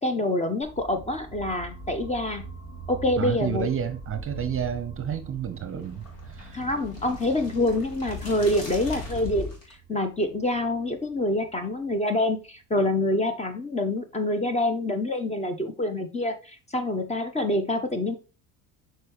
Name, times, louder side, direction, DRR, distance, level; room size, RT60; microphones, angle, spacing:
voice 1, 0.0-2.4 2.9-3.7 6.5-18.2, left 1 dB, 15° left, 1.0 m, -26 dB
sound 1, 0.6-12.5, right 4 dB, 40° left, 3.1 m, -45 dB
voice 2, 3.2-6.6, right 8 dB, 30° right, 0.8 m, -30 dB
sound 2, 4.0-9.7, left 2 dB, 60° left, 2.9 m, -40 dB
6.6 x 4.6 x 3.1 m
supercardioid pair, 90°, 41 cm